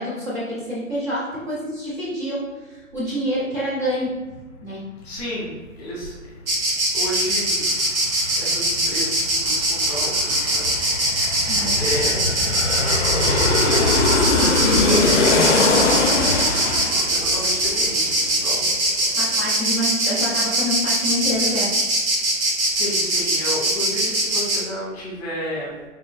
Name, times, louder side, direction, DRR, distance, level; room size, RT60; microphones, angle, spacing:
voice 1, 0.0-4.1 4.6-4.8 11.5-11.8 19.1-21.7, equal, 10° right, -9 dB, 0.6 m, -27 dB
voice 2, 5.0-6.2 6.9-10.8 11.5-12.3 13.2-18.7 22.7-25.7, equal, 30° left, -5 dB, 1.2 m, -32 dB
Insect, 6.5-24.6, right 1 dB, 80° right, 1.1 m, -21 dB
Aircraft, 7.0-7.1 7.3-18.6 18.9-19.0, left 3 dB, 60° left, 0.6 m, -22 dB
4.3 x 3.5 x 2.3 m, 1.2 s
figure-of-eight pair, 145°, 41 cm